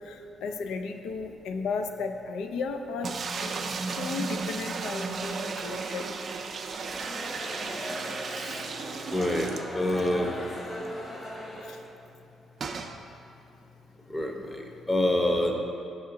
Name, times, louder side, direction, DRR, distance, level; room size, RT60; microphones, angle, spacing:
voice 1, 0.0-6.1 11.6-11.8, left 4 dB, 80° left, 6 dB, 0.3 m, -35 dB
sound 1, 3.0-10.2 10.5-10.6 10.8-10.9 12.6-13.0, right 4 dB, 50° right, 0.4 m, -34 dB
sound 2, 6.7-11.9, left 1 dB, 45° left, 1.1 m, -39 dB
voice 2, 8.3-8.7 9.1-10.4 14.1-15.5, left 1 dB, 15° left, 2 dB, 0.7 m, -27 dB
5.6 x 5.5 x 3.8 m, 2.6 s
cardioid pair, 90°, 0 cm